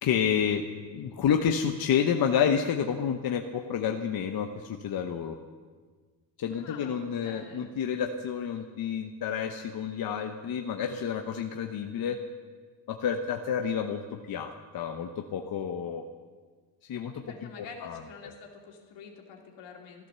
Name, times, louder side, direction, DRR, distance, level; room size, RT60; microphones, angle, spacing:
voice 1, 0.0-5.4 6.4-12.2 12.9-16.0 16.9-18.3, left 7 dB, 50° left, 4 dB, 1.0 m, -30 dB
voice 2, 6.5-7.7 17.3-20.1, left 5 dB, 80° left, 0 dB, 2.7 m, -47 dB
14.5 x 12.0 x 6.8 m, 1.5 s
cardioid pair, 100°, 44 cm